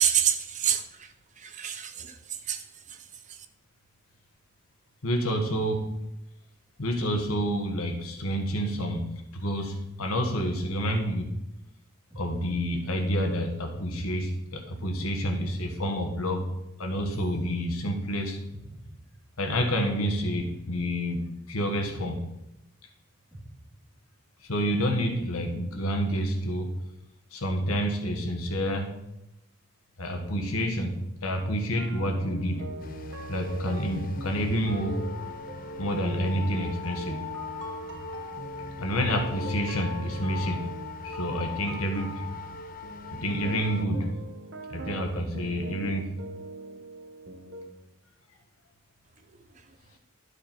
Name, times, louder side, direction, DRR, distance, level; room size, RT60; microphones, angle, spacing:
voice 1, 0.0-2.6 2.9-3.4, right 9 dB, 35° right, 8 dB, 0.6 m, -28 dB
voice 2, 5.0-6.0 6.8-9.1 9.3-11.3 12.1-16.5 16.8-18.4 19.4-22.2 24.4-26.7 27.3-28.9 30.0-32.6 33.3-35.1 35.8-37.2 38.8-40.7 41.0-42.3 43.1-44.1 44.7-46.1, equal, 85° left, 3 dB, 1.5 m, -28 dB
sound 1, 12.1-13.2 13.7-14.9 15.3-16.5 16.9-18.1 18.5-19.6 20.1-21.3 21.7-22.9 23.3-24.2, right 1 dB, ahead, 2.2 m, -46 dB
sound 2, 31.8-47.7, right 1 dB, 55° right, 1.0 m, -42 dB
sound 3, 32.8-43.9, left 4 dB, 40° left, 0.4 m, -39 dB
11.5 x 5.0 x 4.5 m, 0.89 s
head